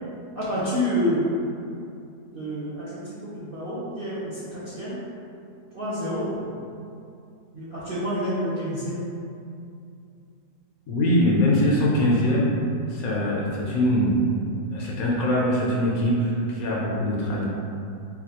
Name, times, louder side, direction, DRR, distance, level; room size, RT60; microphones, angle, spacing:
voice 1, 0.3-1.3 2.3-5.0 5.7-6.6 7.5-9.0, equal, 60° right, -12 dB, 0.6 m, -28 dB
voice 2, 10.9-12.5 12.9-14.3 14.7-17.4, equal, 70° left, -4 dB, 0.9 m, -22 dB
3.9 x 2.3 x 2.8 m, 2.5 s
omnidirectional pair, 1.7 m